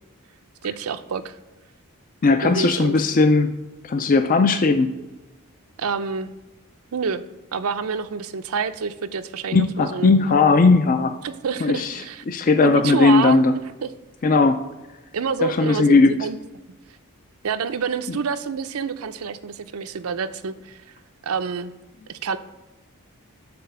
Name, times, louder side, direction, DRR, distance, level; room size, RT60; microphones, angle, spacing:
voice 1, 0.6-1.4 2.4-3.0 5.8-6.3 6.9-7.2 7.5-10.1 11.2-12.2 12.6-13.4 13.8-13.9 15.1-16.4 17.4-20.8 21.2-21.7 22.1-22.4, right 5 dB, 80° right, 10 dB, 0.5 m, -27 dB
voice 2, 2.2-3.5 3.8-4.9 9.5-11.2 11.6-13.5 14.2-14.6 15.4-16.2, left 3 dB, 40° left, 8 dB, 0.4 m, -17 dB
6.8 x 4.1 x 6.5 m, 1.1 s
head